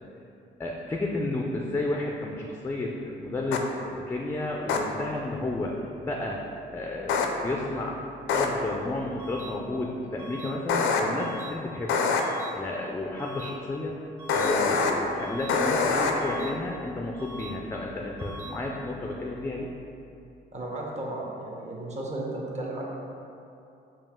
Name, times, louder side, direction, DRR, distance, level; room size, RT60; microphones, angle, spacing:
voice 1, 0.6-6.4 6.7-8.0 8.3-12.0 12.5-14.0 14.3-19.7, left 2 dB, 10° left, -1 dB, 0.3 m, -32 dB
sound 1, 3.5-3.6 4.7-4.8 7.1-7.3 8.3-8.5 10.7-11.0 11.9-12.2 14.3-14.9 15.5-16.1, left 5 dB, 80° left, 0.4 m, -24 dB
sound 2, 9.2-9.5 10.2-10.5 11.2-11.5 12.2-12.5 13.2-13.5 14.2-14.5 15.2-15.5 16.2-16.5 17.2-17.5 18.2-18.5, right 1 dB, 90° right, 1.1 m, -42 dB
voice 2, 20.5-22.8, right 2 dB, 35° right, -2 dB, 0.8 m, -34 dB
5.1 x 2.4 x 3.6 m, 2.7 s
cardioid pair, 90°, 20 cm